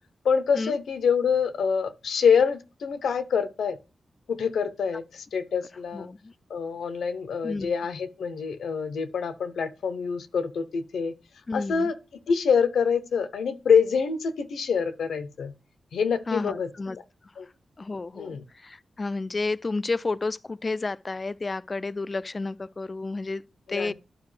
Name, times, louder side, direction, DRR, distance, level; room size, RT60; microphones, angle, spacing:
voice 1, 0.2-3.8 4.3-6.1 6.5-11.1 11.5-12.0 12.3-15.5 15.9-16.7 17.4-17.5 18.1-18.4 23.7-23.9, left 6 dB, 85° left, 0.7 m, -25 dB
voice 2, 5.9-6.3 7.4-7.7 11.5-11.9 16.3-17.0 17.8-23.4 23.7-23.9, left 3 dB, 40° left, 0.3 m, -31 dB
11.0 x 4.7 x 3.2 m
cardioid pair, 55°, 0 cm